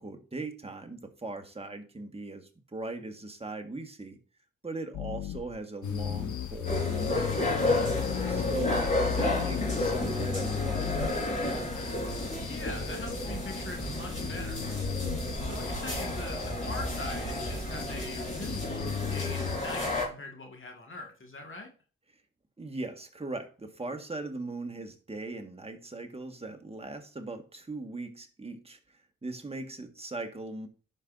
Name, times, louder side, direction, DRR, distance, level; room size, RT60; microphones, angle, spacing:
voice 1, 0.0-4.2 4.6-7.3 8.3-11.7 22.6-30.7, right 2 dB, 20° right, 5 dB, 1.6 m, -39 dB
sound 1, 4.9-5.6 6.0-11.1, left 13 dB, 55° left, 0.4 m, -35 dB
sound 2, 5.8-19.6, left 8 dB, 70° left, 1.2 m, -39 dB
sound 3, 6.6-20.1, left 1 dB, 25° left, 4.0 m, -32 dB
voice 2, 12.4-14.7 15.4-21.7, left 2 dB, 40° left, 2 dB, 1.9 m, -43 dB
11.5 x 5.3 x 2.6 m, 0.37 s
supercardioid pair, 50°, 31 cm